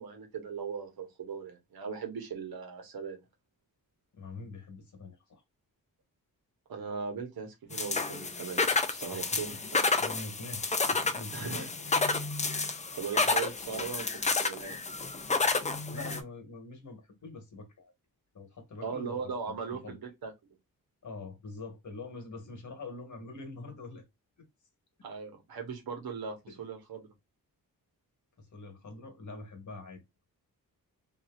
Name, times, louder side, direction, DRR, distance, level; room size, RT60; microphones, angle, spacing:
voice 1, 0.0-3.2 6.7-9.6 11.3-11.7 13.0-14.9 18.8-20.6 25.0-27.1, right 6 dB, 90° right, 1.1 m, -39 dB
voice 2, 4.1-5.4 9.1-12.2 13.7-13.8 15.9-17.9 18.3-19.2 19.5-20.0 21.0-24.0 24.4-24.5 26.5-26.6 28.4-30.0, left 3 dB, 55° left, 1.4 m, -45 dB
sound 1, 7.7-16.2, left 3 dB, 20° left, 0.4 m, -30 dB
2.9 x 2.6 x 2.4 m
wide cardioid pair, 100°, 36 cm